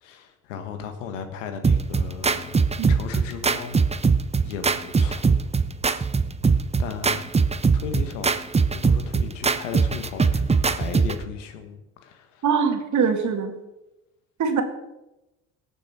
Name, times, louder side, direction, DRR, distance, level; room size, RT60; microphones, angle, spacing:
voice 1, 0.0-2.6 2.9-3.8 4.4-5.5 6.8-7.3 7.7-12.4, left 7 dB, 85° left, 7 dB, 1.5 m, -36 dB
sound 1, 1.6-11.2, right 4 dB, 15° right, 0.8 m, -22 dB
voice 2, 12.4-13.6 14.4-14.6, right 6 dB, 55° right, 5 dB, 2.2 m, -22 dB
18.0 x 7.1 x 4.3 m, 0.97 s
hypercardioid pair, 60°, 36 cm